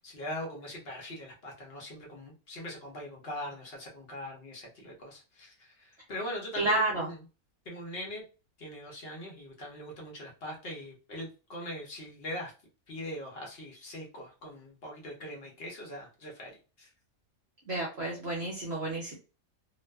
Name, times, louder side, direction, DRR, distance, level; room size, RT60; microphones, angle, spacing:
voice 1, 0.0-7.2 7.7-8.2 8.6-12.5 12.9-16.9, left 1 dB, 50° left, -1 dB, 0.8 m, -41 dB
voice 2, 6.6-7.1 17.7-19.1, right 2 dB, 55° right, -3 dB, 0.8 m, -30 dB
2.5 x 2.2 x 2.2 m, 0.34 s
omnidirectional pair, 1.5 m